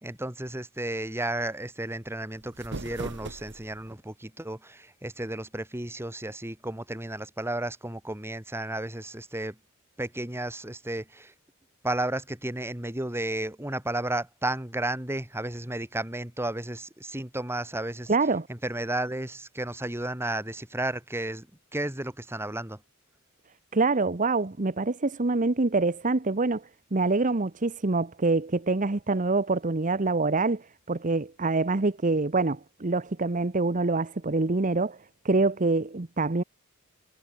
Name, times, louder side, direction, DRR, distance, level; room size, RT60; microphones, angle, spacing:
voice 1, 0.0-9.6 10.0-11.3 11.8-18.1 18.5-21.5 21.7-22.8, right 1 dB, 10° right, 2.1 m, -33 dB
sound 1, 2.3-3.9, right 2 dB, 55° right, 1.3 m, -39 dB
voice 2, 18.1-18.5 23.7-35.0 35.2-36.4, right 3 dB, 35° right, 0.9 m, -25 dB
head